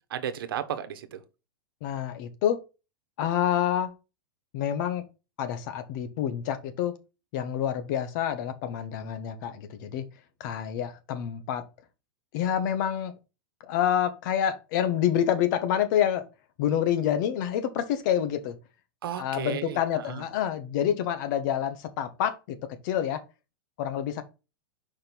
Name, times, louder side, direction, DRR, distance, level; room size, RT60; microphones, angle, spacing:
voice 1, 0.1-1.2 19.0-20.2, right 9 dB, 85° right, 1.1 m, -34 dB
voice 2, 1.8-2.6 3.2-3.9 4.5-5.0 5.4-6.9 7.3-10.0 10.4-11.6 12.3-13.1 13.7-16.3 16.6-18.6 19.2-22.6 22.8-23.2 23.8-24.2, left 10 dB, 55° left, 1.4 m, -27 dB
5.2 x 4.5 x 5.2 m
supercardioid pair, 130°, 12 cm